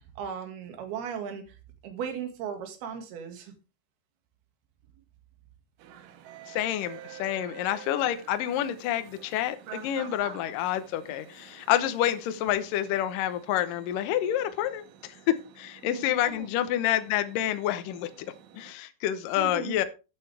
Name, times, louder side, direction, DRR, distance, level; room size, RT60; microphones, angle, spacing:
voice 1, 0.0-1.6 1.8-3.5 7.2-7.4 15.9-16.5 19.4-19.8, right 7 dB, 60° right, 5 dB, 3.7 m, -37 dB
sound 1, 5.8-18.7, right 10 dB, 85° right, 3.7 m, -49 dB
voice 2, 6.5-18.3 18.5-19.8, left 12 dB, 80° left, 10 dB, 1.9 m, -28 dB
13.0 x 8.8 x 3.4 m, 0.31 s
omnidirectional pair, 5.3 m